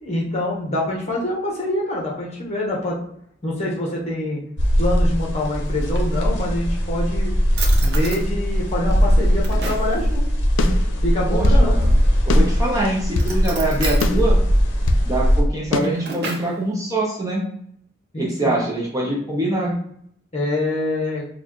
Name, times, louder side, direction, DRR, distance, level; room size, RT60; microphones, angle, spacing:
voice 1, 0.0-3.0 3.4-4.4 4.8-7.4 7.8-10.2 11.0-11.7 18.1-18.6 19.5-19.8 20.3-21.3, left 1 dB, 35° left, -4 dB, 1.1 m, -25 dB
sound 1, 4.6-15.4, equal, 60° left, 0.8 m, -19 dB
Drawer open or close, 5.7-6.6 7.2-7.3 7.6-8.2 8.9-10.0 11.8-12.4 13.1-14.1 15.5-16.6, right 4 dB, 55° right, 0.7 m, -33 dB
sound 2, 10.6-11.7 12.3-13.4 14.0-15.1 15.7-15.8, left 2 dB, 85° left, 0.4 m, -24 dB
voice 2, 11.3-11.9 12.3-14.4 15.0-17.4 18.2-19.7, right 1 dB, 15° right, -3 dB, 0.7 m, -24 dB
4.3 x 2.3 x 3.0 m, 0.67 s
head